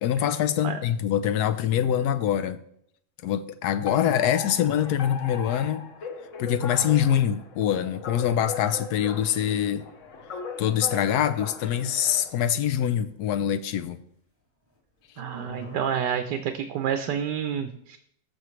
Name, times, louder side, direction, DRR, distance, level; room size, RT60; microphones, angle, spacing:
voice 1, 0.0-2.6 3.2-5.9 6.4-9.9 10.6-14.0, left 10 dB, 75° left, 12 dB, 1.1 m, -24 dB
Alarm, 3.9-12.4, left 5 dB, 55° left, 1.3 m, -38 dB
sound 1, 11.6-12.3 13.2-13.3 13.6-13.7 15.2-15.8, right 1 dB, 15° left, 1.5 m, -42 dB
voice 2, 15.2-18.0, right 8 dB, 85° right, 7 dB, 1.3 m, -29 dB
14.5 x 6.3 x 3.1 m, 0.70 s
omnidirectional pair, 1.8 m